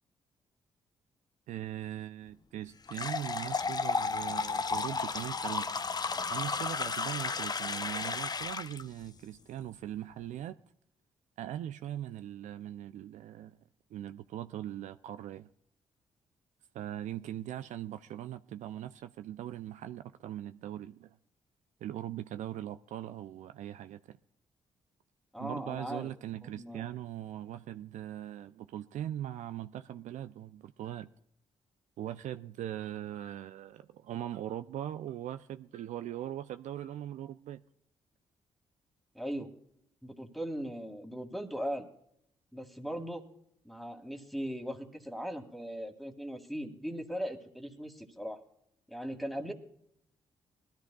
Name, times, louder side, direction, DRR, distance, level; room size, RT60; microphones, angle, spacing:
voice 1, 1.5-5.8 6.3-10.6 11.4-13.6 13.9-15.5 16.7-21.2 21.8-24.2 25.4-31.1 32.0-37.6, right 12 dB, 65° right, 0.4 m, -40 dB
sound 1, 2.9-8.8, left 4 dB, 30° left, 0.6 m, -33 dB
voice 2, 25.3-26.1 26.4-26.9 39.1-39.5 40.0-41.9 42.5-43.2 43.7-48.4 48.9-49.5, equal, ahead, 2.0 m, -39 dB
21.0 x 13.0 x 2.3 m
hypercardioid pair, 45°, 13 cm